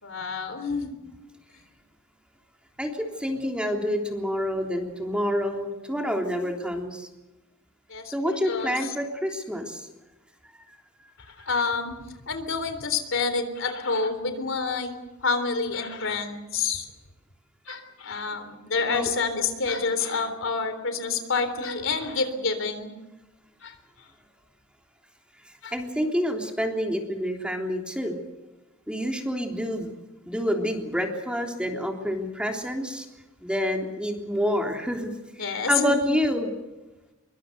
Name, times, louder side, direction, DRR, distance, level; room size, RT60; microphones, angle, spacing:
voice 1, 0.0-0.9 7.9-8.1 8.5-8.9 11.5-11.9 12.3-14.9 15.2-16.9 17.7-22.9 23.6-23.7 25.6-25.7 35.4-36.1, left 4 dB, 65° left, 9 dB, 3.6 m, -28 dB
voice 2, 2.8-7.1 8.1-9.9 18.9-19.1 25.7-28.2 28.9-29.9 30.3-33.1 33.4-35.1 35.4-36.5, equal, 5° right, 2 dB, 3.4 m, -28 dB
25.0 x 23.5 x 6.7 m, 1.1 s
head